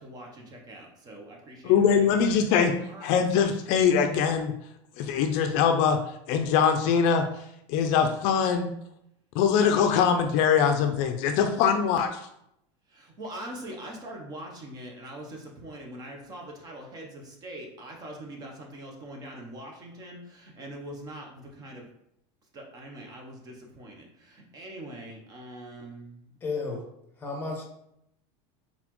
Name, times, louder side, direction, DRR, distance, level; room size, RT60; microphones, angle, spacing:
voice 1, 0.0-2.2 2.9-3.1 12.9-21.9 22.5-26.2, right 1 dB, 25° right, 1 dB, 0.7 m, -43 dB
voice 2, 1.6-2.7 3.0-4.5 5.0-6.0 6.3-7.2 7.7-8.7 9.3-12.2, left 7 dB, 55° left, 6 dB, 0.4 m, -22 dB
voice 3, 26.4-26.8 27.2-27.6, left 3 dB, 15° left, 1 dB, 0.9 m, -32 dB
4.0 x 3.7 x 3.0 m, 0.77 s
supercardioid pair, 155°, 15 cm